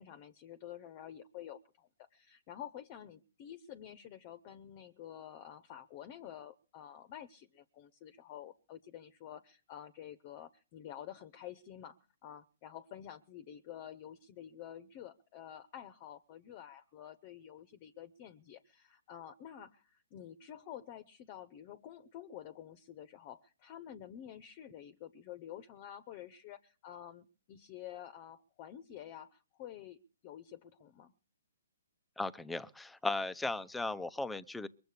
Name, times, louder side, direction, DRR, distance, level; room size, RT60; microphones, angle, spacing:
voice 1, 0.0-31.1, left 10 dB, 35° left, 0.9 m, -49 dB
voice 2, 32.2-34.7, left 2 dB, 5° left, 0.7 m, -36 dB
22.0 x 7.8 x 6.8 m
hypercardioid pair, 140°, 0 cm